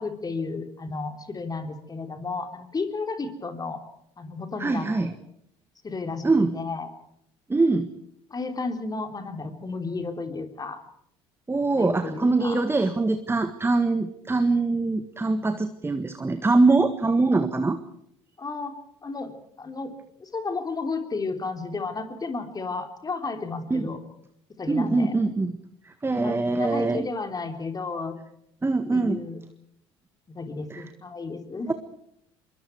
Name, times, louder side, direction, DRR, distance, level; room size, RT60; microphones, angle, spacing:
voice 1, 0.0-3.8 4.2-5.2 5.8-6.2 6.5-6.9 8.3-10.8 11.8-12.6 18.4-19.9 20.2-24.0 24.6-25.1 26.1-28.2 28.9-29.4 30.3-31.7, left 3 dB, 25° left, 7 dB, 3.5 m, -33 dB
voice 2, 4.6-5.1 6.2-6.5 7.5-7.9 11.5-17.8 23.7-23.9 24.7-25.6 25.8-27.1 28.6-29.2 30.7-30.8 31.7-31.8, right 3 dB, 15° right, 10 dB, 1.6 m, -23 dB
26.0 x 23.0 x 4.7 m, 0.74 s
figure-of-eight pair, 55°, 14 cm